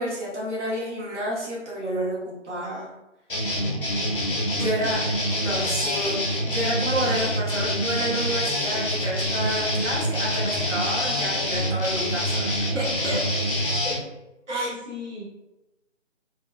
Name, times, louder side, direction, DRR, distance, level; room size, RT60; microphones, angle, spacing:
voice 1, 0.0-2.9 4.5-5.1 5.4-12.5 12.7-13.2 14.5-14.7, equal, 70° right, -6 dB, 1.3 m, -29 dB
sound 1, 3.3-14.0, equal, 45° left, 0.6 m, -26 dB
voice 2, 4.6-4.9 14.5-15.2, equal, 35° right, -6 dB, 1.0 m, -33 dB
4.2 x 2.0 x 2.2 m, 0.99 s
figure-of-eight pair, 165°, 38 cm